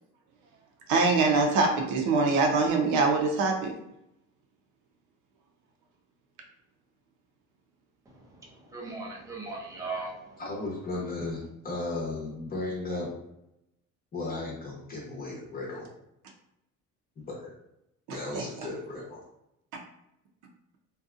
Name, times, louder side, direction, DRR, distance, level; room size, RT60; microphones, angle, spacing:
voice 1, 0.9-3.7 18.1-18.4, right 3 dB, 70° right, 2 dB, 0.7 m, -24 dB
voice 2, 8.1-10.4, right 3 dB, 10° right, -2 dB, 0.5 m, -39 dB
voice 3, 10.4-13.1 14.1-15.9 17.2-17.5 18.1-19.2, left 2 dB, 30° left, -3 dB, 0.8 m, -35 dB
2.7 x 2.3 x 2.4 m, 0.82 s
cardioid pair, 140°, 31 cm